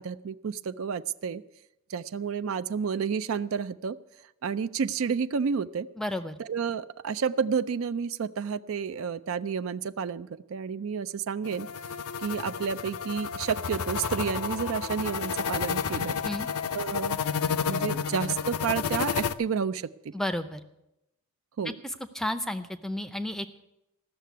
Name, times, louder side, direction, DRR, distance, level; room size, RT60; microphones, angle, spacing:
voice 1, 0.0-1.4 1.9-4.0 4.4-5.9 6.4-11.7 12.2-16.2 16.7-17.2 17.6-20.1 21.6-21.8, right 6 dB, 60° right, 14 dB, 0.4 m, -30 dB
voice 2, 6.0-6.3 16.2-16.5 20.1-20.6 22.1-23.5, left 1 dB, ahead, 11 dB, 0.5 m, -31 dB
sound 1, 11.4-19.3, left 6 dB, 75° left, 0.5 m, -31 dB
14.5 x 6.6 x 9.3 m, 0.89 s
head